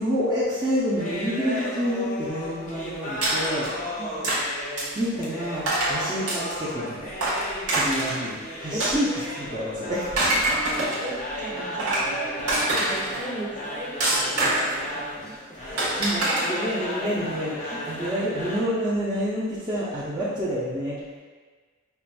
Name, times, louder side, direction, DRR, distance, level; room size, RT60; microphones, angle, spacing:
voice 1, 0.0-3.7 5.0-7.1 7.7-9.1 9.4-10.3 15.6-21.2, equal, 20° right, -10 dB, 0.5 m, -28 dB
sound 1, 1.0-18.6, equal, 35° left, 0.5 m, -35 dB
sound 2, 3.2-3.7 4.2-4.4 4.8-5.0 5.7-6.0 6.3-6.7 7.2-8.2 8.8-9.5 10.0-11.1 11.6-12.1 12.5-13.2 14.0-14.8 15.8-16.4, right 2 dB, 90° right, 1.2 m, -24 dB
voice 2, 10.3-13.9 14.2-15.8 16.8-16.9, right 1 dB, 50° right, -8 dB, 1.0 m, -37 dB
5.5 x 2.5 x 2.2 m, 1.5 s
head